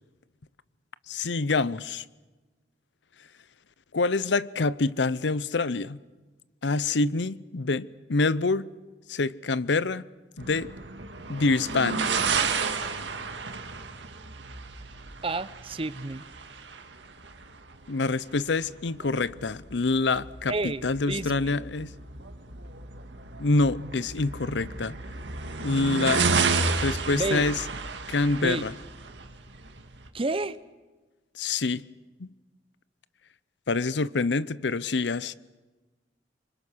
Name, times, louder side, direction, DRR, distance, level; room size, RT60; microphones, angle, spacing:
voice 1, 1.1-2.0 3.9-6.0 6.6-8.7 9.1-10.1 10.4-10.7 11.3-12.1 17.9-21.9 23.4-25.0 25.6-26.3 26.8-27.6 28.1-28.7 31.4-31.8 32.2-32.3 33.7-35.3, left 3 dB, 75° left, 0.7 m, -26 dB
sound 1, 10.4-30.1, right 4 dB, 80° right, 2.1 m, -32 dB
voice 2, 15.2-16.2 20.5-21.6 27.1-27.4 28.4-28.6 30.1-30.6, right 2 dB, 30° right, 0.8 m, -30 dB
27.0 x 25.0 x 6.3 m
head